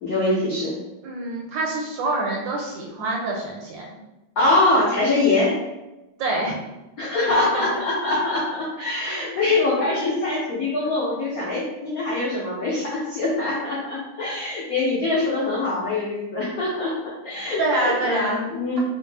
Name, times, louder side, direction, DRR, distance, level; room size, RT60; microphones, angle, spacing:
voice 1, 0.0-0.8 4.4-5.5 7.0-16.9 17.2-18.8, left 2 dB, 70° left, -7 dB, 0.8 m, -23 dB
voice 2, 1.0-3.9 6.2-6.6 7.2-7.7 9.0-9.3 17.6-18.4, right 2 dB, 70° right, -2 dB, 1.2 m, -26 dB
4.0 x 2.0 x 3.2 m, 1.0 s
omnidirectional pair, 2.4 m